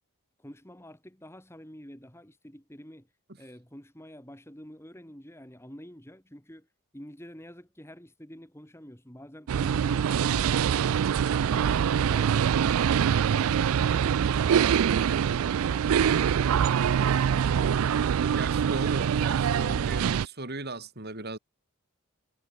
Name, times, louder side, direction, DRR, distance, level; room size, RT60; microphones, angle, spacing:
voice 1, 0.4-3.1 3.4-6.7 6.9-10.9 11.4-17.9, equal, 10° left, 3.7 m, -48 dB
sound 1, 9.5-20.3, right 8 dB, 70° right, 0.3 m, -24 dB
voice 2, 18.3-21.4, right 2 dB, 45° right, 3.7 m, -37 dB
head